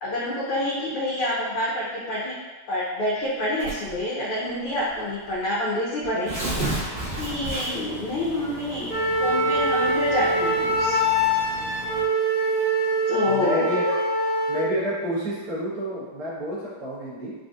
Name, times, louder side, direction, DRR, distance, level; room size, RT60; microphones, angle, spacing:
voice 1, 0.0-2.3 2.7-6.3 7.2-8.9 9.2-11.0 13.1-13.7, left 1 dB, 85° left, -7 dB, 1.7 m, -27 dB
Tearing, 3.6-4.0 4.9-5.0 5.3-5.4 6.0-8.0, right 1 dB, 65° right, 2.0 m, -29 dB
Engine, 6.9-12.0, left 3 dB, 65° left, 1.8 m, -40 dB
Wind instrument woodwind instrument, 8.9-14.7, equal, 45° right, 1.2 m, -23 dB
voice 2, 13.3-13.8 14.5-17.4, equal, 80° right, -9 dB, 2.2 m, -29 dB
5.1 x 2.6 x 2.4 m, 1.2 s
omnidirectional pair, 2.3 m